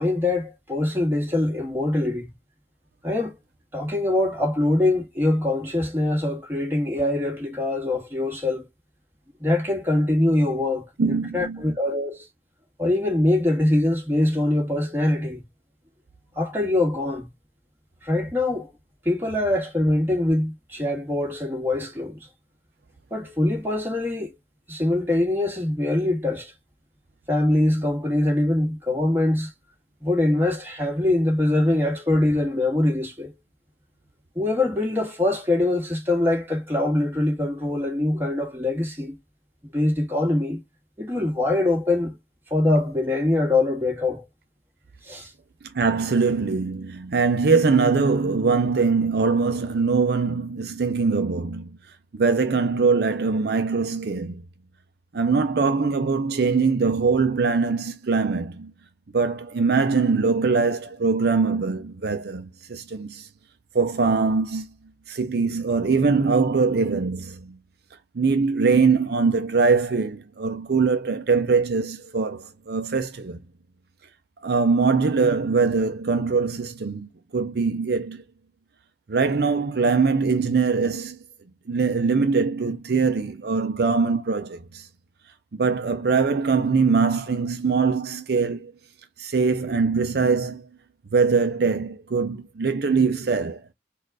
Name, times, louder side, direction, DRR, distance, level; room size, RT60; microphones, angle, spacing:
voice 1, 0.0-2.3 3.0-3.4 3.7-8.7 9.4-12.3 12.8-15.4 16.4-17.3 18.0-18.7 19.0-22.2 23.1-24.3 24.7-26.5 27.3-29.5 30.0-33.3 34.4-39.2 39.7-40.6 41.0-42.2 42.5-44.3 45.0-45.3, left 1 dB, 10° right, 1.8 m, -23 dB
voice 2, 11.0-11.7 45.6-51.8 52.1-54.4 55.1-58.7 59.1-63.3 63.7-64.7 65.1-67.6 68.1-73.4 74.4-78.2 79.1-81.2 81.7-84.9 85.5-88.7 89.2-90.7 91.1-93.6, right 4 dB, 60° right, 0.5 m, -22 dB
4.4 x 2.5 x 4.7 m
head